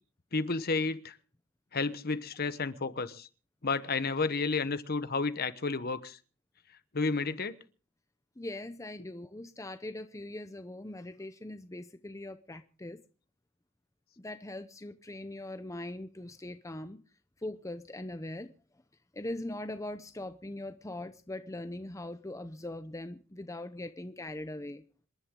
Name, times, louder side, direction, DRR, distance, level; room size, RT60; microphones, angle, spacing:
voice 1, 0.3-1.2 1.7-3.3 3.6-6.2 6.9-7.6, left 4 dB, 45° left, 12 dB, 1.1 m, -31 dB
voice 2, 8.4-13.0 14.2-17.0 17.4-18.5 19.1-24.8, left 1 dB, 15° left, 9 dB, 0.7 m, -41 dB
27.0 x 11.0 x 3.7 m, 0.38 s
head